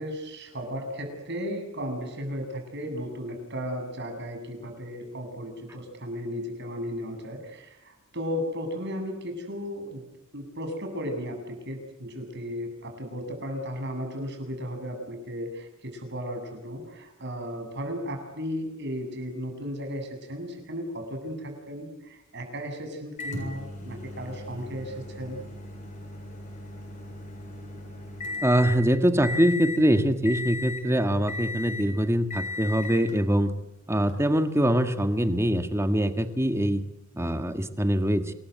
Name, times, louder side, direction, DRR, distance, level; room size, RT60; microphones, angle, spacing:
voice 1, 0.0-10.0 10.3-25.4, equal, 55° right, 4 dB, 7.7 m, -35 dB
Microwave oven, 23.2-28.8 29.2-29.8 30.2-30.9 31.3-31.9 32.3-33.1 34.1-34.2 36.2-36.3, left 2 dB, 35° left, 7.3 m, -36 dB
voice 2, 28.4-33.5 33.9-36.8 37.2-38.3, equal, 10° right, 8 dB, 1.7 m, -23 dB
28.0 x 21.5 x 8.2 m, 0.85 s
head